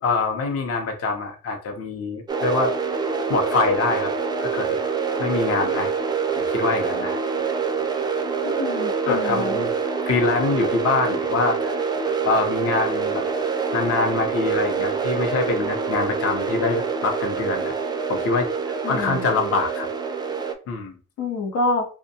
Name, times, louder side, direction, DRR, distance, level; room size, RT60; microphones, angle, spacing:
voice 1, 0.0-2.7 3.3-4.1 4.4-4.8 5.2-5.9 6.4-7.2 9.0-9.7 10.0-11.8 12.2-13.3 13.7-17.7 18.1-19.9 20.7-21.0, left 3 dB, 50° left, 3 dB, 0.6 m, -24 dB
sound 1, 2.3-20.5, right 5 dB, 15° right, 0.3 m, -26 dB
voice 2, 8.4-9.6 18.8-19.3 21.2-21.9, left 3 dB, 80° left, 1 dB, 0.8 m, -27 dB
2.6 x 2.1 x 2.7 m, 0.37 s
cardioid pair, 90°, 30 cm